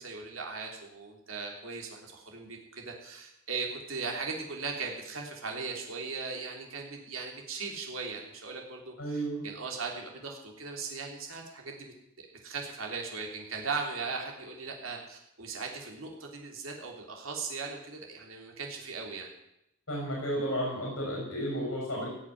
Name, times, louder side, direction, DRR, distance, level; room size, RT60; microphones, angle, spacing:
voice 1, 0.0-19.3, right 4 dB, 80° right, 1 dB, 3.3 m, -38 dB
voice 2, 9.0-9.4 19.9-22.1, equal, 70° left, -2 dB, 6.0 m, -32 dB
17.5 x 7.3 x 9.4 m, 0.83 s
head